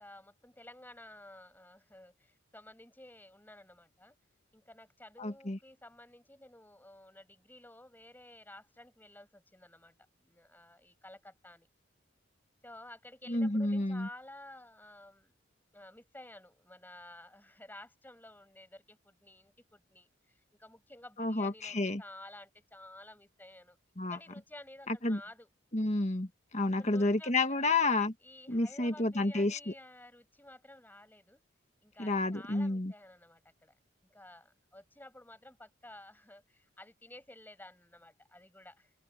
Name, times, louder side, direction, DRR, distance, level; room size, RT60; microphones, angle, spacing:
voice 1, 0.0-4.1 4.5-11.7 12.6-15.5 15.7-23.8 24.1-25.5 26.7-27.7 28.2-31.4 31.8-33.8 34.1-38.9, left 1 dB, 10° left, 7.6 m, -53 dB
voice 2, 5.2-5.6 13.3-14.1 21.2-22.0 24.0-24.2 24.9-25.2 25.7-28.1 28.5-29.7 32.0-32.9, left 2 dB, 35° left, 1.7 m, -30 dB
open air
head